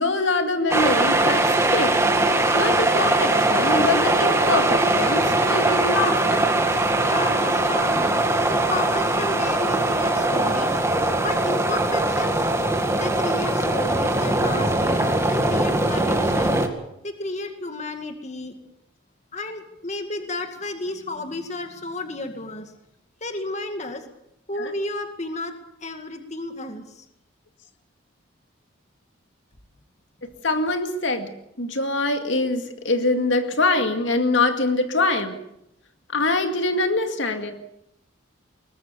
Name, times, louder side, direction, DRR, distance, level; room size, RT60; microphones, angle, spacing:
voice 1, 0.0-2.0 2.5-6.5 24.6-24.7 30.4-31.3 31.6-35.4 36.1-37.5, left 2 dB, 65° left, 6 dB, 2.2 m, -24 dB
sound 1, 0.7-16.7, right 2 dB, 15° right, 2.1 m, -21 dB
voice 2, 7.0-8.2 8.5-10.8 11.2-12.5 13.0-16.7 17.0-18.6 19.3-22.7 23.2-24.0 24.5-25.6 25.8-27.1, left 2 dB, 35° left, 6 dB, 2.1 m, -32 dB
22.0 x 20.0 x 6.9 m, 0.79 s
head